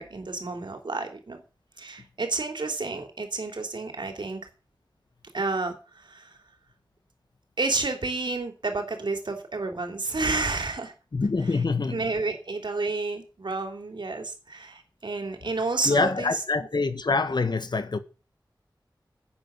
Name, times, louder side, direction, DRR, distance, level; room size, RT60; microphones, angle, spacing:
voice 1, 0.0-1.4 1.8-4.4 5.3-5.8 6.1-6.3 7.6-10.9 11.9-16.3, right 3 dB, 70° right, 3.4 m, -30 dB
voice 2, 11.1-12.1 15.8-18.0, left 3 dB, 65° left, 1.5 m, -25 dB
10.5 x 9.2 x 8.3 m
wide cardioid pair, 80°, 8 cm